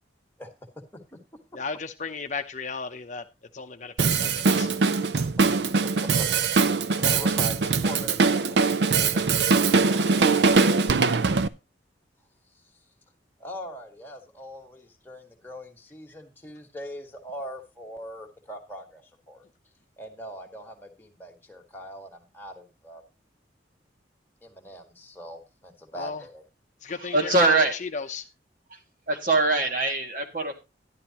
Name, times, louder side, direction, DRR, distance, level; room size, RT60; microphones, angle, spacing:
voice 1, 0.4-0.8 1.1-1.4 6.0-6.3 6.6-10.0 12.5-12.7 13.4-19.4 20.0-23.0 24.4-26.4, equal, 10° left, 1 dB, 1.7 m, -41 dB
voice 2, 1.5-4.7 25.9-26.2 26.8-28.3, left 4 dB, 40° left, 6 dB, 0.7 m, -35 dB
Drum kit, 4.0-11.5, right 4 dB, 65° right, 0.5 m, -22 dB
voice 3, 27.1-27.7 28.7-28.8 29.1-30.6, right 2 dB, 45° right, 3 dB, 1.8 m, -23 dB
12.0 x 11.0 x 2.9 m, 0.26 s
head